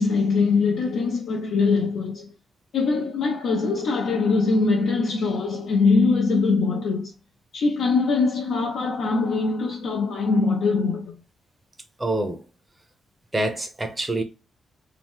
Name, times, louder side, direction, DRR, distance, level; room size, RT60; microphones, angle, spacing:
voice 1, 0.0-2.3 2.7-7.1 7.5-11.1, left 4 dB, 80° left, 0.6 m, -22 dB
voice 2, 12.0-12.4 13.3-14.2, right 1 dB, 15° right, 0.7 m, -26 dB
2.8 x 2.0 x 3.4 m
cardioid pair, 95°, 0 cm